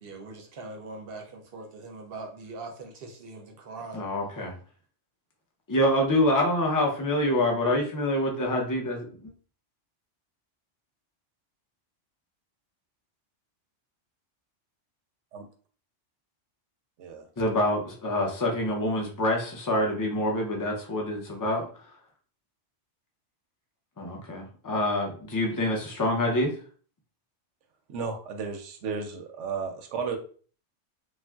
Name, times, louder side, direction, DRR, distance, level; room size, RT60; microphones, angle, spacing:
voice 1, 0.0-4.0, right 3 dB, 60° right, 0.7 m, -41 dB
voice 2, 3.9-4.5 5.7-9.3 17.4-21.7 24.0-26.5, left 1 dB, 30° left, 0.4 m, -26 dB
voice 3, 27.9-30.2, right 5 dB, 85° right, 0.9 m, -33 dB
3.2 x 2.4 x 2.2 m
omnidirectional pair, 1.2 m